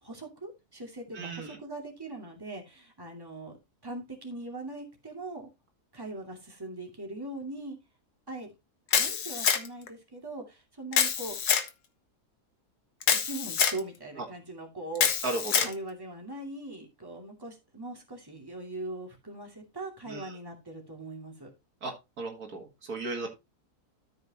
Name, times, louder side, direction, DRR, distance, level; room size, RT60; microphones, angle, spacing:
voice 1, 0.0-3.6 3.8-5.5 5.9-7.8 8.3-8.5 8.9-11.4 13.1-15.2 15.6-21.5, right 2 dB, 15° right, 0 dB, 2.6 m, -41 dB
voice 2, 1.1-1.6 14.2-14.3 15.2-15.7 20.1-20.4 21.8-23.3, right 2 dB, 70° right, 3 dB, 2.4 m, -36 dB
Camera, 8.9-9.9 10.9-11.7 13.0-13.8 15.0-15.7, left 7 dB, 85° left, 1.7 m, -26 dB
13.0 x 6.5 x 2.9 m, 0.24 s
omnidirectional pair, 1.6 m